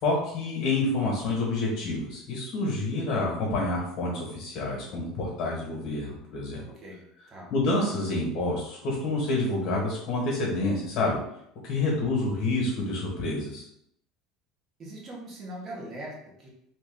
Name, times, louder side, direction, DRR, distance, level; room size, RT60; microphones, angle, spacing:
voice 1, 0.0-6.6 7.5-11.2 11.6-13.6, left 2 dB, 45° left, -3 dB, 1.3 m, -28 dB
voice 2, 6.7-7.5 14.8-16.5, right 1 dB, 30° right, -3 dB, 1.0 m, -41 dB
2.9 x 2.5 x 3.8 m, 0.75 s
cardioid pair, 145°, 0 cm